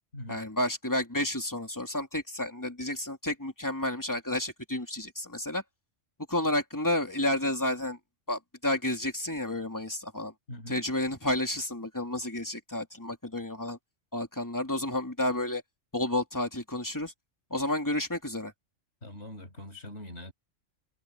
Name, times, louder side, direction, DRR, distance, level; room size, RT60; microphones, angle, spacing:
voice 1, 0.3-5.6 6.3-8.0 8.3-10.3 10.7-13.8 14.1-15.6 15.9-17.1 17.5-18.5, left 1 dB, 15° left, 3.0 m, -31 dB
voice 2, 10.5-10.8 19.0-20.3, left 1 dB, 60° left, 6.7 m, -42 dB
omnidirectional pair, 1.3 m